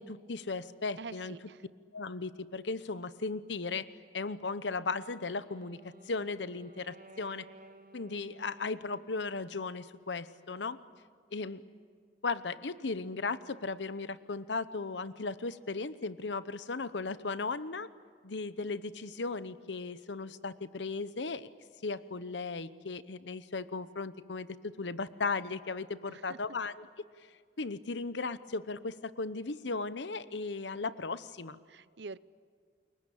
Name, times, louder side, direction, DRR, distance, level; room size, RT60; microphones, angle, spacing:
voice 1, 0.0-1.4 1.9-3.9 4.1-7.5 7.9-10.8 11.3-11.6 12.2-17.9 18.2-21.5 21.8-26.9 27.6-31.6, left 4 dB, 85° left, 14 dB, 0.9 m, -36 dB
voice 2, 1.0-1.7 26.1-26.4 31.7-32.2, right 4 dB, 70° right, 18 dB, 0.7 m, -46 dB
Wind instrument woodwind instrument, 4.9-9.5, right 2 dB, 55° right, 1.9 m, -56 dB
29.0 x 22.5 x 8.5 m, 2.1 s
head